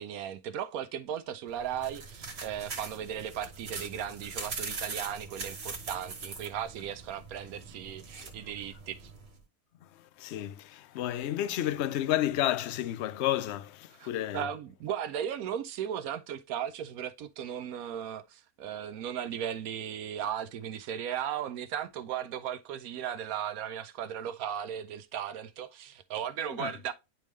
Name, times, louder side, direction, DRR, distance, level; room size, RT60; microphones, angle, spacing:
voice 1, 0.0-9.1 14.0-14.1 14.3-26.9, right 9 dB, 80° right, 1.0 m, -36 dB
sound 1, 1.5-9.4, right 4 dB, 45° right, 1.5 m, -42 dB
voice 2, 9.8-14.5 26.5-26.8, left 13 dB, 65° left, 0.7 m, -31 dB
9.9 x 3.5 x 3.1 m
omnidirectional pair, 1.5 m